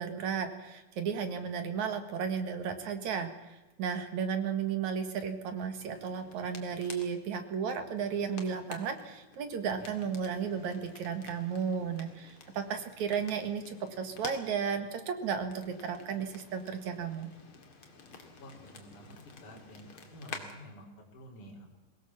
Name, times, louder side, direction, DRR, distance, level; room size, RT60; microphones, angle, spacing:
voice 1, 0.0-17.3, right 6 dB, 60° right, 7 dB, 2.8 m, -34 dB
voice 2, 1.1-1.5 9.7-10.1 18.4-19.2 19.4-21.8, equal, 60° left, -2 dB, 5.1 m, -51 dB
sound 1, 5.8-20.5, left 4 dB, 40° left, 2.8 m, -50 dB
22.5 x 17.5 x 7.3 m, 1.1 s
omnidirectional pair, 4.1 m